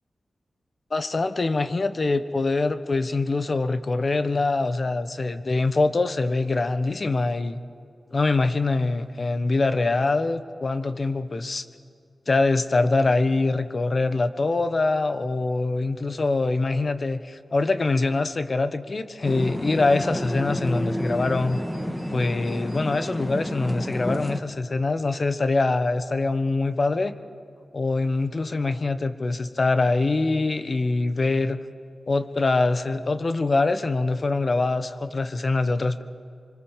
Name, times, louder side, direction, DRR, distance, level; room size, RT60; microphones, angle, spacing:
voice 1, 0.9-7.6 8.1-11.7 12.3-21.6 22.1-27.1 27.7-31.6 32.1-36.0, left 3 dB, 45° left, 11 dB, 1.2 m, -24 dB
sound 1, 19.2-24.4, equal, 5° left, 1.6 m, -30 dB
26.5 x 24.5 x 7.4 m, 2.3 s
wide cardioid pair, 90°, 0 cm